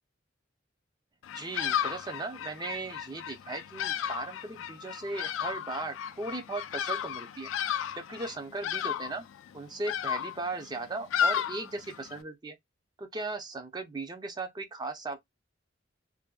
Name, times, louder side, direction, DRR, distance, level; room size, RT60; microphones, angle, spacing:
Bird vocalization bird call bird song, 1.2-12.2, left 9 dB, 80° left, 0.3 m, -34 dB
voice 1, 1.3-7.5 8.0-9.2 9.5-12.6 13.0-15.2, right 3 dB, 20° right, 0.5 m, -37 dB
2.5 x 2.1 x 2.3 m
head